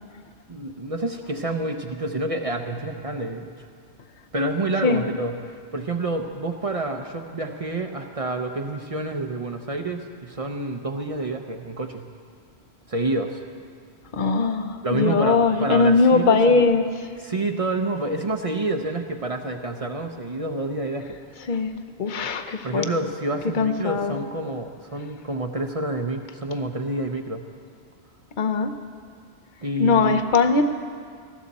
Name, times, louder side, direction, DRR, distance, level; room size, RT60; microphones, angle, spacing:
voice 1, 0.5-3.7 4.3-12.1 12.9-13.4 14.8-16.6 17.2-21.2 22.6-27.4 29.6-30.2, right 2 dB, 35° right, 5 dB, 0.7 m, -28 dB
voice 2, 14.1-16.9 21.5-21.7 22.0-22.8 23.5-24.2 28.4-28.7 29.8-30.6, left 4 dB, 50° left, 7 dB, 0.9 m, -20 dB
19.0 x 15.0 x 4.2 m, 2.1 s
omnidirectional pair, 1.1 m